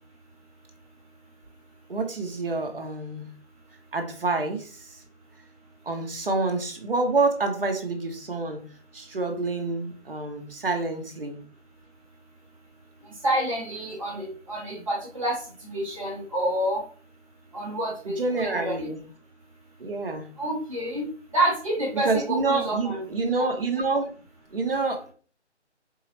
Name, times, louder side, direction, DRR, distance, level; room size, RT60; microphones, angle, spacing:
voice 1, 1.9-3.3 3.9-5.0 5.9-8.6 8.9-11.4 18.1-19.0 19.8-20.3 22.0-24.1 24.5-25.1, right 3 dB, 50° right, 4 dB, 0.8 m, -27 dB
voice 2, 13.2-15.4 15.6-16.8 17.5-18.9 20.4-21.1 21.3-23.0, right 1 dB, 30° right, -4 dB, 1.2 m, -28 dB
4.6 x 2.0 x 3.0 m, 0.41 s
figure-of-eight pair, 175°, 35 cm